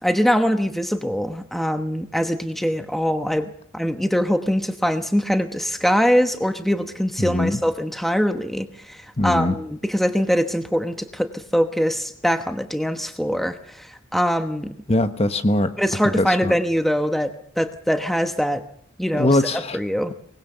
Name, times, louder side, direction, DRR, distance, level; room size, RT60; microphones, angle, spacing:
voice 1, 0.0-14.7 15.8-18.6 19.0-19.4 19.7-20.1, equal, ahead, 7 dB, 1.1 m, -23 dB
voice 2, 7.2-7.6 9.2-9.5 14.9-15.7 16.2-16.5 19.1-19.8, left 1 dB, 30° left, 9 dB, 1.1 m, -21 dB
24.0 x 20.0 x 6.8 m, 0.66 s
head